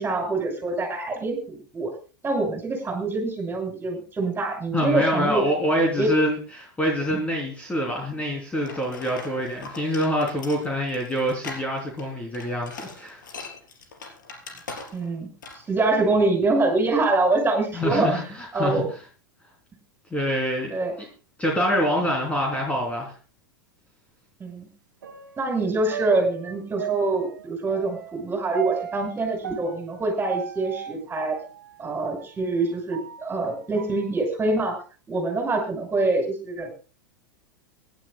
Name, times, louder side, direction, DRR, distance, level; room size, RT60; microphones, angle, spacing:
voice 1, 0.0-1.9 2.2-5.4 6.0-6.1 14.9-15.3 15.7-18.1 18.5-18.9 20.7-20.9 24.4-24.7 25.4-31.4 31.8-34.8 35.1-36.7, right 3 dB, 20° right, 4 dB, 6.3 m, -25 dB
voice 2, 4.7-13.2 17.7-18.8 20.1-20.8 21.4-23.1, equal, 10° left, 0 dB, 3.4 m, -25 dB
sound 1, 8.7-15.2 15.4-15.7, left 4 dB, 75° left, 3.7 m, -40 dB
sound 2, 25.0-32.3 32.7-34.0 34.5-34.6, right 9 dB, 75° right, 1.5 m, -36 dB
24.5 x 11.5 x 2.3 m, 0.35 s
hypercardioid pair, 95°, 11 cm